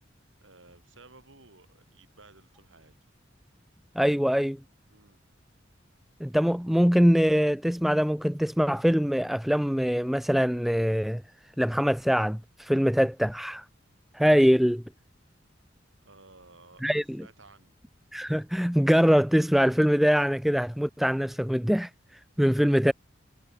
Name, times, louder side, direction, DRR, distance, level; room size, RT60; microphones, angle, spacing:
voice 1, 0.4-2.9 4.9-5.2 16.0-17.7, right 3 dB, 80° right, 5.9 m, -55 dB
voice 2, 4.0-4.6 6.2-11.2 11.6-13.6 14.1-14.8 16.8-17.3 18.1-21.9 22.4-22.9, equal, ahead, 0.3 m, -23 dB
head